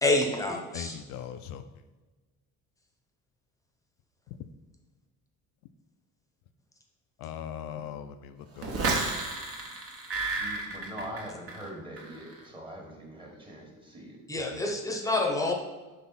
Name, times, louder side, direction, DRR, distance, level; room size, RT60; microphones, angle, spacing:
voice 1, 0.0-1.0 14.3-15.5, left 2 dB, 10° left, 1 dB, 0.9 m, -27 dB
voice 2, 0.7-1.6 7.2-9.1, left 9 dB, 75° left, 9 dB, 0.5 m, -40 dB
sound 1, 8.6-11.7 12.0-12.4, right 3 dB, 40° right, 1.1 m, -32 dB
voice 3, 10.4-14.2, equal, 15° right, 0 dB, 1.4 m, -42 dB
6.0 x 3.3 x 5.6 m, 1.2 s
cardioid pair, 125°, 34 cm